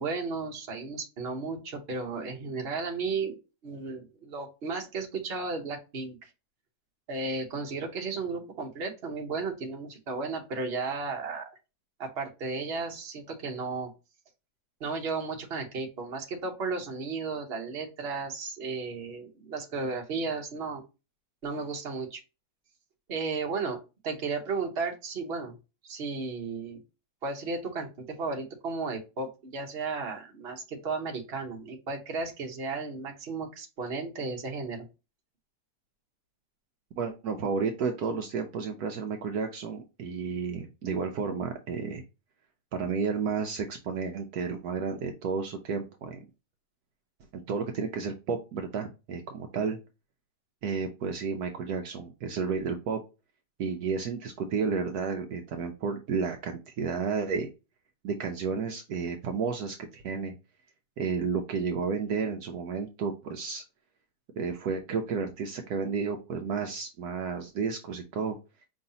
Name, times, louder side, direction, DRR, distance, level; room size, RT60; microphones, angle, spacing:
voice 1, 0.0-3.4 3.6-6.3 7.1-11.5 12.0-13.9 14.8-20.8 21.4-22.2 23.1-25.5 25.8-26.8 27.2-34.8, right 4 dB, 45° right, 2 dB, 1.1 m, -34 dB
voice 2, 37.0-42.0 42.7-46.2 47.3-49.8 50.6-53.0 53.6-57.5 58.0-60.3 61.0-63.6 64.4-68.4, right 5 dB, 70° right, 4 dB, 1.1 m, -32 dB
5.2 x 3.2 x 2.7 m, 0.28 s
omnidirectional pair, 1.8 m